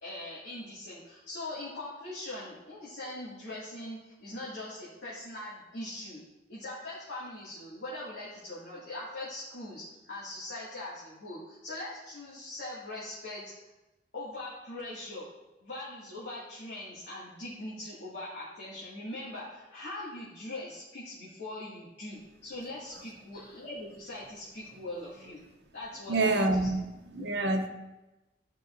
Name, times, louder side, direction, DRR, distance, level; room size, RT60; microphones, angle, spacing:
voice 1, 0.0-6.2 6.5-13.7 14.1-15.3 15.6-25.4 25.7-26.7, left 1 dB, 80° left, -10 dB, 2.3 m, -41 dB
voice 2, 26.1-26.8 27.1-27.7, right 2 dB, 70° right, 4 dB, 0.9 m, -26 dB
12.5 x 5.4 x 2.6 m, 1.0 s
head